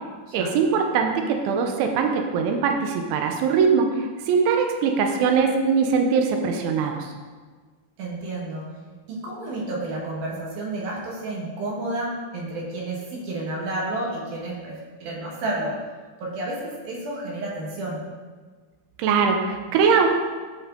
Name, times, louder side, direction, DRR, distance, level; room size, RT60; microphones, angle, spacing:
voice 1, 0.3-7.1 19.0-20.1, right 5 dB, 80° right, 3 dB, 3.3 m, -21 dB
voice 2, 8.0-8.7 9.1-15.9 16.2-18.1, right 2 dB, 60° right, -3 dB, 2.9 m, -31 dB
16.0 x 5.5 x 3.9 m, 1.4 s
omnidirectional pair, 5.5 m